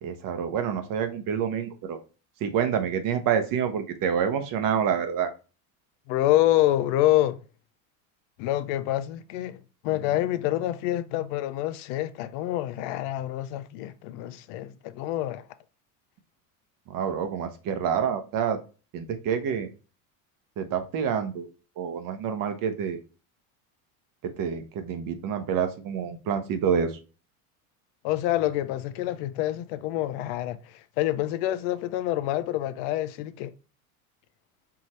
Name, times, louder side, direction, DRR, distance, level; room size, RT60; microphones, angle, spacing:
voice 1, 0.0-2.0 2.4-5.3 16.9-18.6 18.9-19.7 20.6-21.5 21.8-23.0 24.2-27.0, right 8 dB, 50° right, 0.9 m, -27 dB
voice 2, 6.1-7.4 8.4-15.4 28.0-33.5, left 14 dB, 70° left, 0.6 m, -27 dB
4.7 x 2.7 x 3.1 m
supercardioid pair, 105°, 43 cm